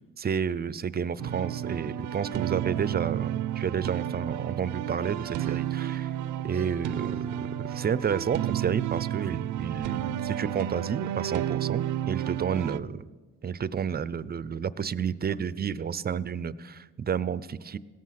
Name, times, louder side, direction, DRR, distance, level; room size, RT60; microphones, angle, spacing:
voice 1, 0.2-6.1 6.4-13.1 13.4-17.8, right 7 dB, 30° right, 18 dB, 0.5 m, -31 dB
sound 1, 1.2-12.8, right 11 dB, 75° right, 0.6 m, -32 dB
17.0 x 14.0 x 5.8 m, 1.3 s
cardioid pair, 90°, 30 cm